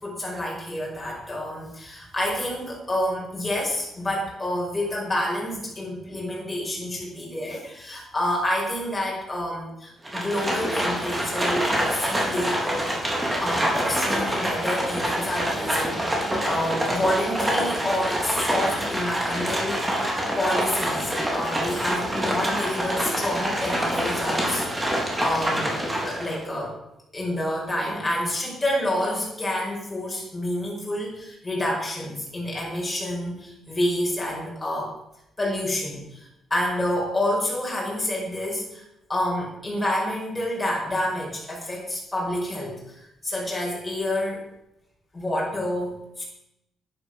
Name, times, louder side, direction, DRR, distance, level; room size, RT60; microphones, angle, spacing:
voice 1, 0.0-20.0 20.4-25.8 26.1-26.7 27.1-34.9 35.4-38.8 39.1-44.4 45.1-46.2, left 1 dB, 15° left, -4 dB, 5.3 m, -28 dB
Livestock farm animals working animals, 10.0-26.4, equal, 15° right, 3.8 m, -26 dB
10.5 x 9.4 x 6.2 m, 0.86 s
cardioid pair, 90°, 0 cm